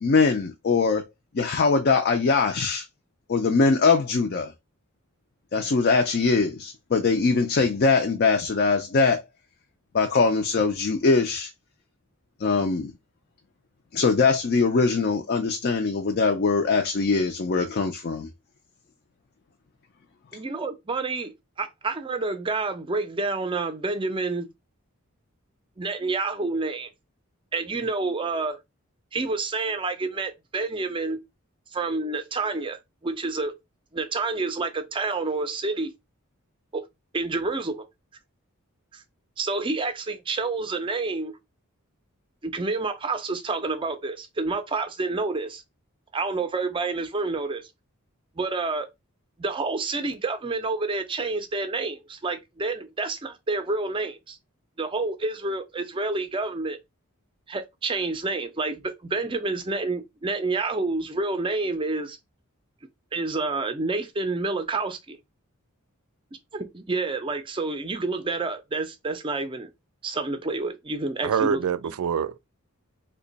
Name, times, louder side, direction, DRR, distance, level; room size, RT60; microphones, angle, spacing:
voice 1, 0.0-1.0 1.3-2.8 3.3-4.5 5.5-9.2 9.9-11.5 12.4-12.9 13.9-18.3, left 4 dB, 45° left, 0.4 m, -22 dB
voice 2, 20.3-24.5 25.8-26.9 27.5-28.6 29.1-31.2 31.7-32.8 33.0-33.5 33.9-35.9 36.7-36.8 37.1-37.8 38.9-39.0 39.4-41.4 42.4-45.6 46.1-47.7 48.4-48.9 49.4-54.4 54.8-56.8 57.5-62.2 63.1-65.2 66.5-69.7 70.0-71.9, right 3 dB, 25° right, 0.4 m, -28 dB
voice 3, 71.2-72.4, right 7 dB, 90° right, 0.4 m, -25 dB
2.9 x 2.2 x 3.9 m
head